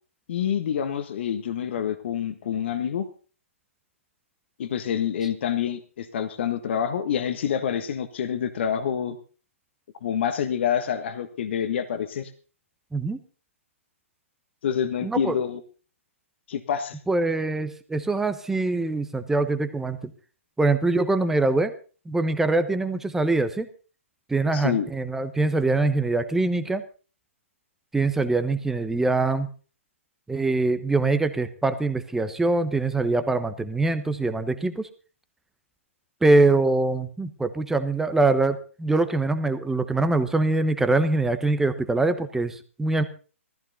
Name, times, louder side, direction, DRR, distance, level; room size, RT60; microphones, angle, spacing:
voice 1, 0.3-3.1 4.6-9.2 10.0-12.3 14.6-15.6 16.5-17.0 24.5-24.9, left 8 dB, 55° left, 9 dB, 1.4 m, -27 dB
voice 2, 15.0-15.4 17.1-20.0 20.6-21.7 22.1-23.7 24.3-26.8 27.9-29.5 30.3-34.9 36.2-43.0, right 2 dB, 5° right, 10 dB, 1.1 m, -23 dB
16.0 x 14.5 x 4.1 m, 0.37 s
hypercardioid pair, 130°, 7 cm